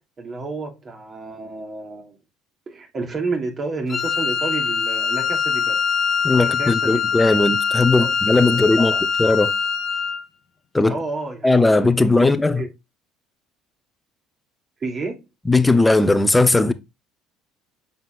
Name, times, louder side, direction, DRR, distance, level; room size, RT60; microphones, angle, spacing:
voice 1, 0.2-2.1 2.7-5.8 6.4-7.1 8.0-8.1 8.8-9.0 10.8-11.6 12.0-12.7 14.8-15.2, right 3 dB, 40° right, 3.1 m, -30 dB
Wind instrument woodwind instrument, 3.9-10.2, left 6 dB, 40° left, 1.2 m, -23 dB
voice 2, 6.2-8.9 9.2-9.5 10.7-11.0 11.4-12.6 15.5-16.7, left 2 dB, 15° left, 0.9 m, -17 dB
7.7 x 5.4 x 2.5 m
hypercardioid pair, 70°, 0 cm